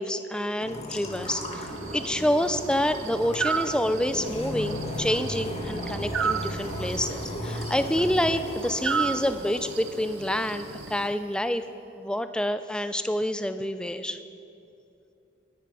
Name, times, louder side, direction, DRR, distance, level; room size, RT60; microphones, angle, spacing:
voice 1, 0.0-1.7 1.9-11.6 12.0-14.2, left 1 dB, 5° left, 10 dB, 0.4 m, -27 dB
sound 1, 0.6-11.0, left 1 dB, 30° left, 1.4 m, -36 dB
sound 2, 1.1-11.1, right 6 dB, 80° right, 0.5 m, -35 dB
19.5 x 10.5 x 4.9 m, 2.8 s
head